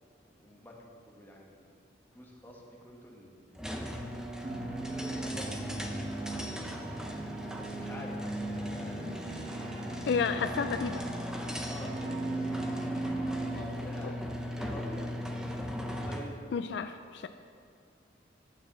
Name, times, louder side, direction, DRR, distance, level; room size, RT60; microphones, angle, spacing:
voice 1, 0.4-0.7 1.1-1.8 2.1-3.9 4.8-5.8 6.2-6.7 7.6-9.1 9.7-10.1 11.7-12.4 12.9-13.2 13.5-14.2 14.5-15.1 16.0-16.4, left 1 dB, 10° left, -3 dB, 1.4 m, -48 dB
sound 1, 3.6-16.4, equal, 5° right, 0.6 m, -38 dB
sound 2, 4.4-13.6, right 2 dB, 40° right, 0.9 m, -38 dB
voice 2, 10.1-11.0 16.5-17.3, left 5 dB, 65° left, 9 dB, 0.3 m, -31 dB
9.5 x 4.7 x 7.4 m, 2.3 s
head